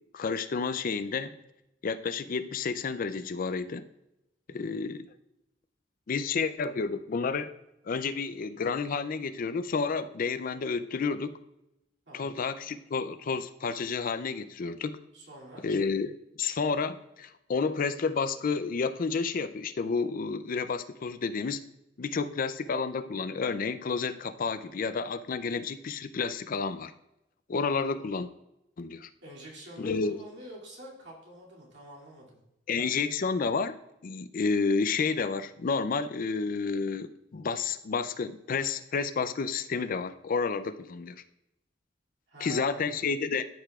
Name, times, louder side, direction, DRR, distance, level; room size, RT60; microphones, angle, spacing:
voice 1, 0.0-1.4 1.8-3.8 4.5-5.1 6.1-7.5 7.9-11.4 12.1-15.0 15.6-21.6 22.0-26.9 27.5-28.3 28.8-29.1 29.8-30.2 32.7-33.8 34.0-41.2 42.4-43.4, left 5 dB, 50° left, 12 dB, 0.4 m, -30 dB
voice 2, 4.5-4.8 12.1-12.4 15.1-15.7 29.2-32.4 42.3-43.0, right 1 dB, 70° right, -4 dB, 2.5 m, -47 dB
13.5 x 6.8 x 2.4 m, 0.87 s
head